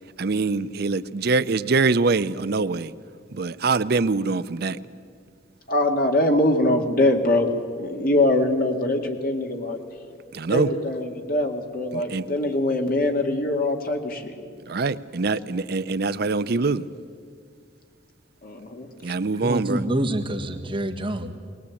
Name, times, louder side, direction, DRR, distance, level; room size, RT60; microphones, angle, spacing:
voice 1, 0.2-2.9 3.3-4.8 10.3-10.7 11.9-12.2 14.7-16.9 19.0-19.8, right 4 dB, 55° right, 14 dB, 0.5 m, -24 dB
voice 2, 5.7-7.5 7.8-9.8 10.5-14.4 18.4-18.9, left 1 dB, 50° left, 3 dB, 2.1 m, -23 dB
voice 3, 19.4-21.4, right 1 dB, 25° right, 3 dB, 1.6 m, -27 dB
22.0 x 19.0 x 8.4 m, 2.1 s
head